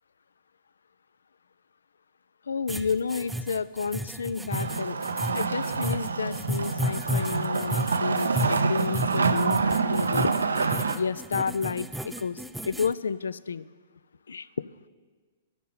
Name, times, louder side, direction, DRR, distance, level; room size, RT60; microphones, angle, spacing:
voice 1, 2.5-5.0 5.3-10.3 10.9-12.4 12.7-13.6 14.3-14.5, left 5 dB, 65° left, 18 dB, 0.4 m, -31 dB
sound 1, 2.7-12.9, equal, 5° right, 0.4 m, -33 dB
Wood, 4.5-11.0, right 4 dB, 70° right, 0.6 m, -27 dB
13.0 x 6.6 x 9.6 m, 1.5 s
figure-of-eight pair, 110°, 0 cm